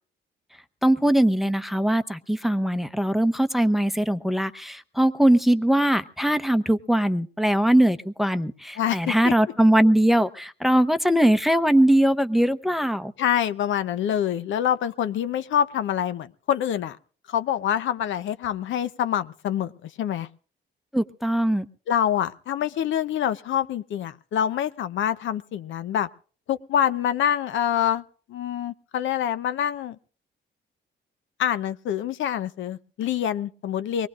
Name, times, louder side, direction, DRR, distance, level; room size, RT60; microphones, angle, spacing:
voice 1, 0.8-13.1 20.9-21.7, right 1 dB, ahead, 9 dB, 0.7 m, -21 dB
voice 2, 8.8-9.3 13.2-17.0 17.3-20.3 21.9-26.1 26.5-28.0 28.3-30.0 31.4-34.1, left 10 dB, 75° left, 12 dB, 0.8 m, -26 dB
24.0 x 19.0 x 2.5 m, 0.41 s
cardioid pair, 90°, 20 cm